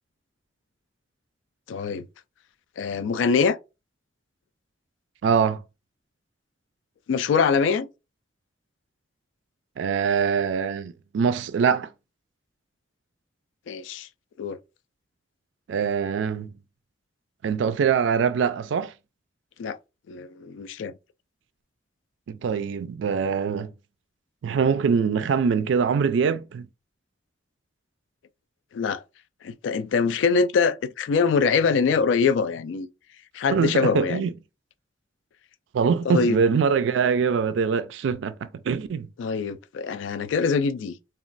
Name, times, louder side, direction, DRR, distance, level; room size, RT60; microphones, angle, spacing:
voice 1, 1.7-2.0 2.8-3.6 7.1-7.9 13.7-14.1 14.4-14.6 19.6-19.8 20.1-20.9 28.7-29.0 29.4-32.9 33.3-34.2 36.1-36.4 39.2-40.9, left 5 dB, 80° left, 0.3 m, -23 dB
voice 2, 5.2-5.6 9.8-11.9 15.7-16.5 17.4-18.9 22.3-23.7 24.4-26.7 33.5-34.3 35.7-39.1, right 6 dB, 75° right, 0.3 m, -23 dB
3.0 x 2.3 x 2.5 m
head